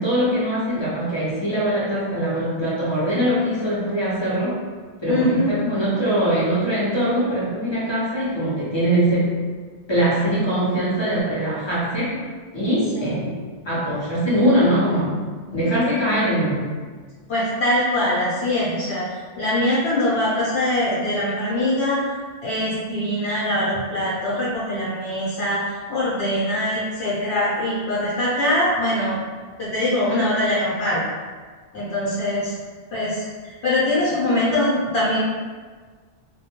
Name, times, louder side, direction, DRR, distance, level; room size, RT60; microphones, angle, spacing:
voice 1, 0.0-4.6 5.0-9.3 9.9-12.2 12.5-13.4 13.6-15.1 15.5-16.7, right 1 dB, 30° left, -9 dB, 0.5 m, -22 dB
voice 2, 5.1-5.5 12.9-13.1 17.3-19.0 19.4-22.1 22.4-29.2 29.6-31.0 31.7-32.5 32.9-35.3, left 1 dB, 70° left, -9 dB, 1.0 m, -22 dB
2.2 x 2.2 x 2.8 m, 1.5 s
omnidirectional pair, 1.2 m